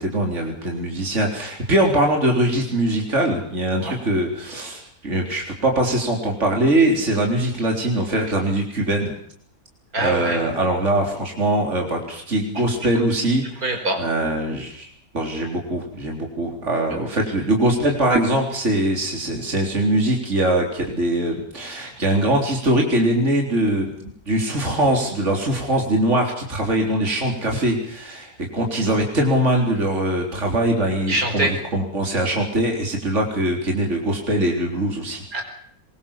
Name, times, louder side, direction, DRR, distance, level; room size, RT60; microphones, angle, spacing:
voice 1, 0.0-9.1 10.0-13.7 14.0-14.9 15.1-23.9 24.3-35.2, right 1 dB, 55° right, 1 dB, 4.3 m, -22 dB
voice 2, 9.9-10.4 13.6-14.0 31.1-31.5 35.3-35.4, right 1 dB, 80° right, 3 dB, 5.6 m, -23 dB
23.5 x 22.5 x 7.3 m, 0.64 s
omnidirectional pair, 1.5 m